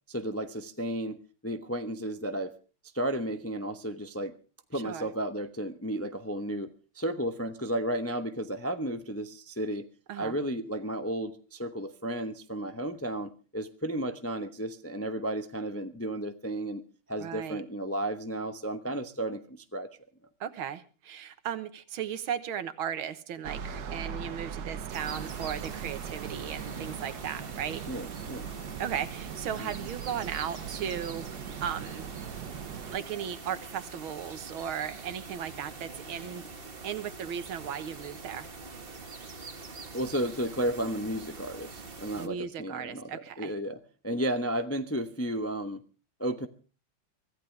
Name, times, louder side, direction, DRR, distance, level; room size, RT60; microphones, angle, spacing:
voice 1, 0.1-2.5 2.9-4.3 4.7-6.7 6.9-9.9 10.2-16.8 17.1-19.9 27.9-28.5 29.6-29.7 39.9-43.8 44.0-45.8 46.2-46.5, right 1 dB, 20° left, 8 dB, 0.4 m, -33 dB
voice 2, 4.7-5.1 10.1-10.4 17.2-17.6 20.4-27.8 28.8-32.1 32.9-36.4 36.8-38.5 42.2-43.5, right 8 dB, 90° right, 12 dB, 2.0 m, -36 dB
sound 1, 23.4-33.0, right 7 dB, 55° right, 1.4 m, -40 dB
sound 2, 24.9-42.3, right 4 dB, 30° right, 1.4 m, -44 dB
24.5 x 14.5 x 3.3 m, 0.36 s
omnidirectional pair, 2.2 m